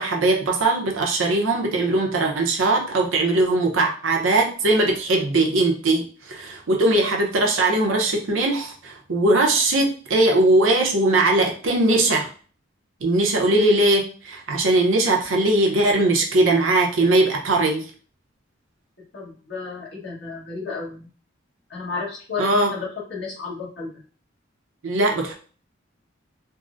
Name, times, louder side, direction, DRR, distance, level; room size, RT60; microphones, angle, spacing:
voice 1, 0.0-12.3 13.0-17.9 22.4-22.7 24.8-25.3, right 2 dB, 85° right, 1 dB, 0.7 m, -20 dB
voice 2, 19.1-21.1 21.7-24.0, left 4 dB, 60° left, -6 dB, 1.3 m, -32 dB
3.6 x 2.0 x 2.5 m, 0.41 s
head